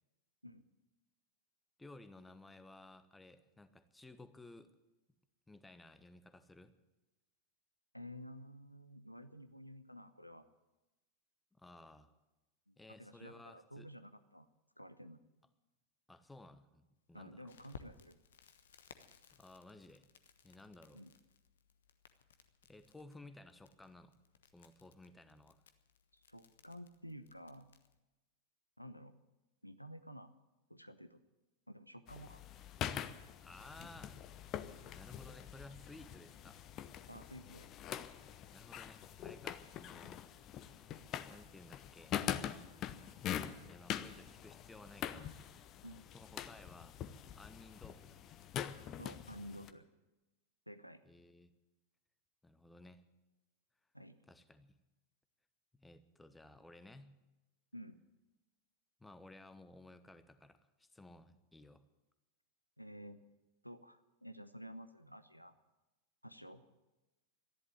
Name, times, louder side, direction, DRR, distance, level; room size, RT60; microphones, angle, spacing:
voice 1, 1.8-4.7 5.5-6.7 11.5-12.1 12.8-13.9 16.1-17.8 19.4-20.1 20.4-21.0 22.7-24.1 24.5-25.6 33.4-34.2 34.9-36.7 38.5-40.2 41.3-42.2 43.6-45.3 46.1-47.0 47.3-48.2 51.0-51.5 52.4-53.0 54.3-54.7 55.7-57.1 59.0-61.8, left 2 dB, 5° left, 11 dB, 1.0 m, -57 dB
voice 2, 7.9-10.5 12.7-14.5 14.8-15.2 17.1-18.2 20.9-21.1 26.1-27.7 28.8-29.2 29.6-30.3 30.7-31.2 31.7-32.4 37.1-37.7 45.8-46.1 49.0-49.8 50.7-51.0 53.9-54.2 57.7-58.0 62.8-63.2 63.6-65.5 66.2-66.6, equal, 90° left, 12 dB, 0.9 m, -52 dB
Crackle, 17.5-28.0, left 7 dB, 65° left, 1.0 m, -62 dB
sound 1, 32.1-49.7, left 10 dB, 35° left, 0.9 m, -44 dB
13.5 x 11.0 x 9.6 m, 1.1 s
figure-of-eight pair, 90°, 0 cm